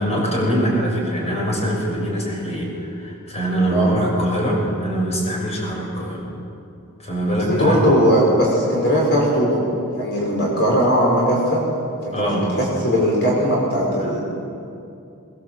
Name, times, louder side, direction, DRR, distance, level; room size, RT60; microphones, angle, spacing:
voice 1, 0.0-6.2 7.0-7.8 12.1-12.5 14.0-14.2, equal, 30° left, -2 dB, 6.3 m, -23 dB
voice 2, 7.5-9.6 10.0-11.6 12.0-12.3 12.6-14.2, equal, 50° left, -3 dB, 5.4 m, -18 dB
23.0 x 21.5 x 7.8 m, 2.6 s
head